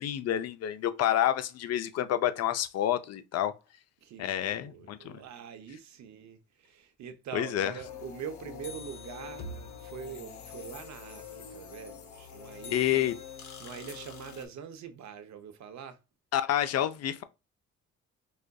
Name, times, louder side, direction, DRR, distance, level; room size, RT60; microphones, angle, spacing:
voice 1, 0.0-3.5 4.2-5.2 7.3-7.7 12.7-13.1 16.3-17.2, left 11 dB, 55° left, 0.5 m, -28 dB
voice 2, 4.0-9.5 9.8-16.0, right 7 dB, 65° right, 0.7 m, -44 dB
sound 1, 7.8-14.5, left 6 dB, 75° left, 0.9 m, -45 dB
4.9 x 2.6 x 2.2 m
cardioid pair, 90°, 30 cm